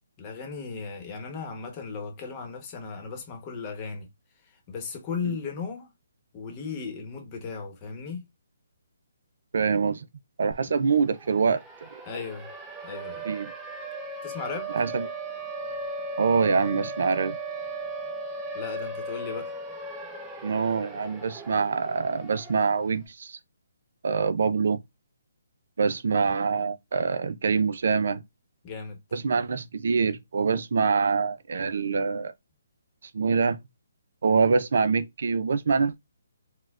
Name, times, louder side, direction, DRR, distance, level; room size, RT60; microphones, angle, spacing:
voice 1, 0.2-4.1 4.7-5.9 6.3-8.2 12.1-12.5 12.8-13.3 14.2-14.7 18.5-19.6 28.6-29.0, left 5 dB, 25° left, 1.0 m, -36 dB
voice 2, 9.5-10.0 10.4-11.6 13.3-13.5 14.7-15.1 16.2-17.4 20.4-23.4 24.0-24.8 25.8-28.2 29.1-32.3 33.1-33.6 34.2-35.9, right 5 dB, 65° right, 0.4 m, -25 dB
Siren, 10.5-10.6 10.9-22.9, right 2 dB, 5° right, 0.6 m, -37 dB
4.2 x 2.2 x 2.4 m
hypercardioid pair, 155°, 0 cm